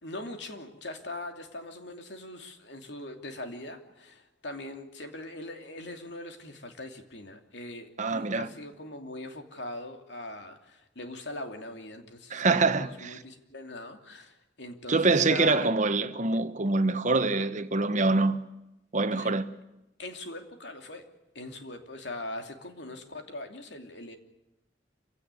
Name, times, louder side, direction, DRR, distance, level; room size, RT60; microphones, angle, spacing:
voice 1, 0.0-15.7 19.1-19.3 20.0-21.0 21.3-24.2, left 1 dB, 70° left, 2.8 m, -41 dB
voice 2, 8.0-8.5 12.3-13.2 14.9-18.4 18.9-19.5, right 3 dB, 45° right, 1.3 m, -25 dB
27.0 x 17.0 x 9.8 m
head